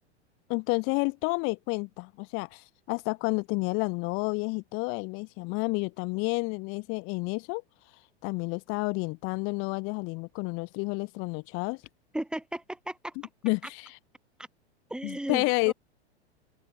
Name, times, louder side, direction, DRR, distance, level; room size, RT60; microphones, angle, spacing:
voice 1, 0.5-7.6 8.2-11.8 13.4-14.0 15.0-15.7, left 30 dB, 40° left, 0.9 m, -30 dB
voice 2, 12.1-13.1 14.9-15.7, right 1 dB, ahead, 1.8 m, -35 dB
open air
figure-of-eight pair, 95°, 33 cm